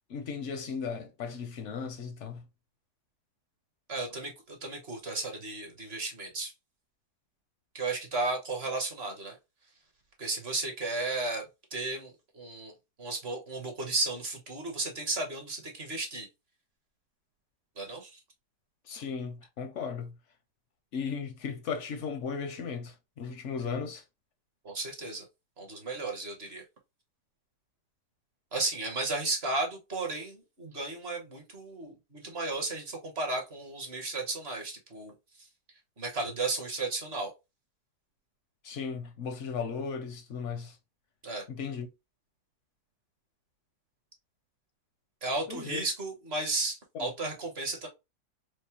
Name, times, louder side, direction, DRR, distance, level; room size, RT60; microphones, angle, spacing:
voice 1, 0.1-2.4 18.9-20.1 20.9-24.0 38.6-40.8 41.5-41.9 45.5-45.9 46.9-47.1, left 6 dB, 60° left, 0.8 m, -36 dB
voice 2, 3.9-6.5 7.7-9.4 10.2-12.7 13.0-16.3 17.8-18.2 24.6-25.3 25.6-26.6 28.5-35.5 36.0-37.3 41.2-41.4 45.2-47.9, right 2 dB, 45° right, 1.1 m, -34 dB
4.7 x 2.1 x 2.8 m
omnidirectional pair, 1.7 m